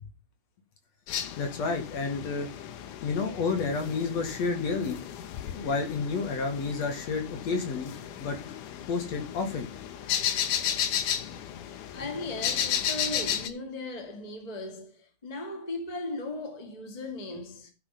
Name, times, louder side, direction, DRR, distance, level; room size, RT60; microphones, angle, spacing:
sound 1, 1.1-13.5, left 9 dB, 85° left, 2.7 m, -34 dB
voice 1, 1.4-2.5 3.0-5.0 5.5-7.9 8.2-8.6 8.9-9.7, left 4 dB, 60° left, 3.1 m, -30 dB
voice 2, 11.9-17.7, left 2 dB, 15° left, 1.9 m, -37 dB
14.5 x 5.4 x 5.7 m
omnidirectional pair, 3.6 m